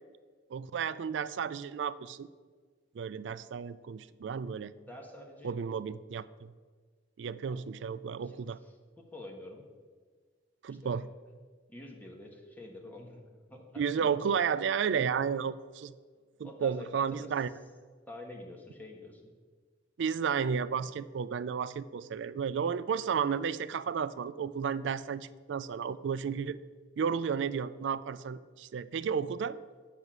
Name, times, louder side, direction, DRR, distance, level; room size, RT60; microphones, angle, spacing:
voice 1, 0.5-2.3 2.9-4.7 5.4-6.5 7.2-8.6 10.6-11.1 13.8-15.9 16.4-17.5 20.0-26.6 27.0-29.6, right 6 dB, 70° right, 16 dB, 0.4 m, -32 dB
voice 2, 4.7-5.5 7.5-7.6 8.2-9.6 10.7-11.0 11.7-14.2 16.4-17.3 18.1-19.3, left 1 dB, 10° left, 1 dB, 1.3 m, -48 dB
8.2 x 6.6 x 6.1 m, 1.5 s
head